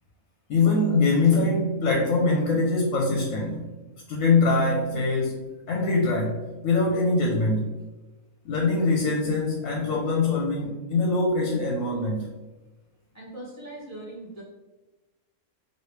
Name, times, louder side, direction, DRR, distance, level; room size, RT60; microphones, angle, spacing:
voice 1, 0.5-3.6 4.1-7.7 8.4-12.3, left 3 dB, 70° left, -1 dB, 0.9 m, -23 dB
voice 2, 13.1-14.4, right 1 dB, 25° left, -5 dB, 0.3 m, -40 dB
3.0 x 2.8 x 3.1 m, 1.1 s
omnidirectional pair, 1.5 m